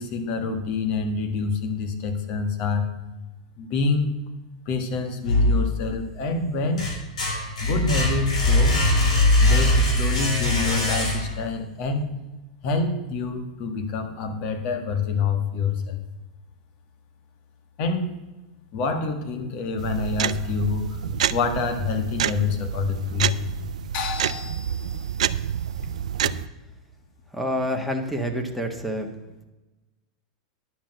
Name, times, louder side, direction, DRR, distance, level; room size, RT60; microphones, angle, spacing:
voice 1, 0.0-2.9 3.6-4.1 4.7-6.9 7.6-8.8 9.4-12.1 12.6-16.0 17.8-18.1 18.7-21.0 21.3-23.4 23.9-25.4, left 4 dB, 50° left, 7 dB, 1.8 m, -27 dB
sound 1, 5.2-6.1 6.5-11.5, left 1 dB, 90° left, 3.3 m, -21 dB
sound 2, 19.8-26.5, right 10 dB, 85° right, 0.4 m, -28 dB
voice 2, 27.3-29.1, equal, ahead, 4 dB, 1.5 m, -27 dB
10.0 x 6.0 x 7.8 m, 1.1 s
hypercardioid pair, 120°, 4 cm